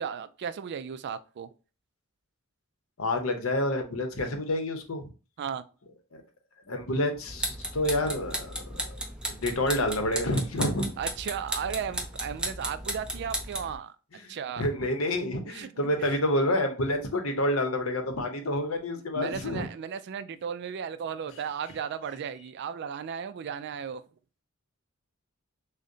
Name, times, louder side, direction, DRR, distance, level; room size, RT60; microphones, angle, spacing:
voice 1, 0.0-1.5 5.4-5.6 11.0-13.9 14.3-14.7 15.1-16.2 19.1-24.0, right 7 dB, 55° right, 0.3 m, -35 dB
voice 2, 3.0-5.1 6.1-6.2 6.7-9.0 9.3-10.9 14.2-19.7, left 1 dB, 70° left, 0.8 m, -28 dB
sound 1, 7.3-13.8, right 1 dB, 5° right, 0.5 m, -35 dB
6.4 x 2.1 x 2.6 m
head